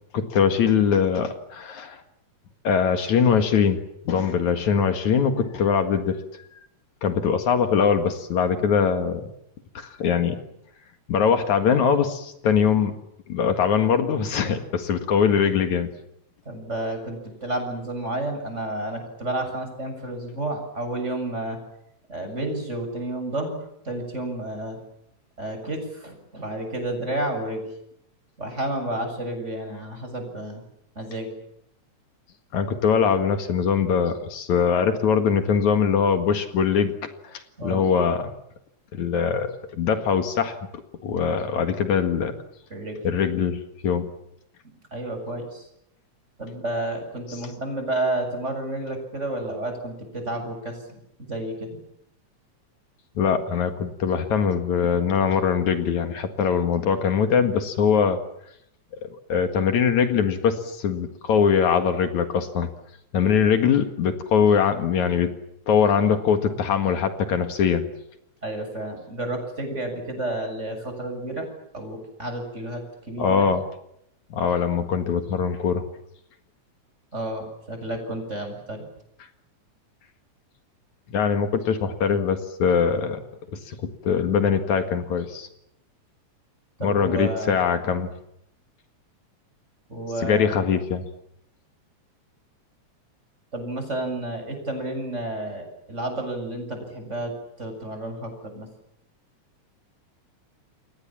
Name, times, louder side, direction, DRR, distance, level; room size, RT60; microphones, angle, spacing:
voice 1, 0.1-2.0 2.6-3.8 4.1-6.2 7.0-9.3 9.7-10.4 11.1-12.9 13.3-15.9 32.5-36.9 37.2-38.3 38.9-42.3 43.0-44.1 53.2-58.2 59.3-62.7 63.1-65.3 65.7-67.9 73.2-73.6 74.3-75.8 81.1-83.2 83.7-85.5 86.8-88.1 90.2-91.1, left 6 dB, 75° left, 7 dB, 3.2 m, -22 dB
voice 2, 16.5-21.6 22.1-23.6 23.8-24.8 25.4-27.6 28.4-30.6 31.0-31.3 37.6-37.8 42.7-43.0 44.9-45.7 46.4-51.8 68.4-71.5 71.7-73.5 77.1-78.8 86.8-87.6 89.9-90.6 93.5-98.7, right 1 dB, 20° right, 5 dB, 7.4 m, -31 dB
30.0 x 23.5 x 7.4 m, 0.77 s
omnidirectional pair, 3.4 m